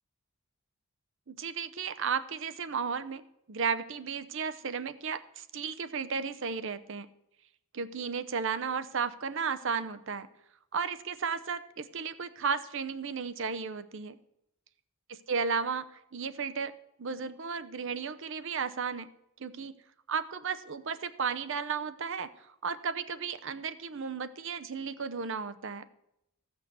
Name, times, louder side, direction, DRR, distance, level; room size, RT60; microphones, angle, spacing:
voice 1, 1.3-3.2 3.5-7.1 7.7-10.3 10.7-14.2 15.1-15.8 16.1-16.7 17.0-19.1 19.4-19.7 20.1-22.3 22.6-25.8, right 5 dB, 65° right, 12 dB, 0.7 m, -34 dB
14.5 x 6.3 x 6.9 m, 0.81 s
head